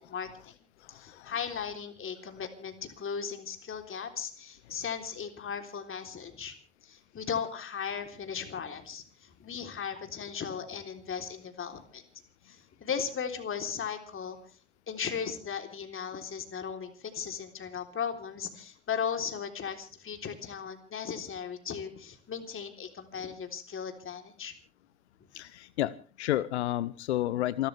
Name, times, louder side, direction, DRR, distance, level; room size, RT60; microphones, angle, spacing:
voice 1, 0.1-0.5 0.9-6.5 6.8-12.0 12.5-14.4 14.9-24.5, left 7 dB, 40° left, 6 dB, 3.7 m, -37 dB
voice 2, 0.9-1.3 25.3-27.7, left 14 dB, 80° left, 19 dB, 0.7 m, -31 dB
28.0 x 13.0 x 3.4 m, 0.39 s
figure-of-eight pair, 60°, 33 cm